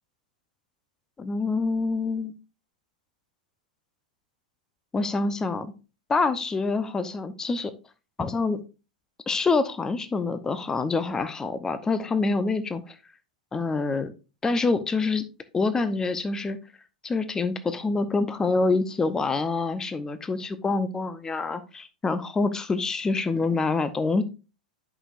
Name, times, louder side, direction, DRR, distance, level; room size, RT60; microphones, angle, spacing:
voice 1, 1.2-2.3 4.9-5.7 6.1-7.7 8.2-8.6 9.3-13.0 13.5-14.1 14.4-15.2 15.5-16.6 17.0-24.2, left 3 dB, 15° left, 12 dB, 0.7 m, -26 dB
11.0 x 6.1 x 2.5 m, 0.31 s
figure-of-eight pair, 95°, 4 cm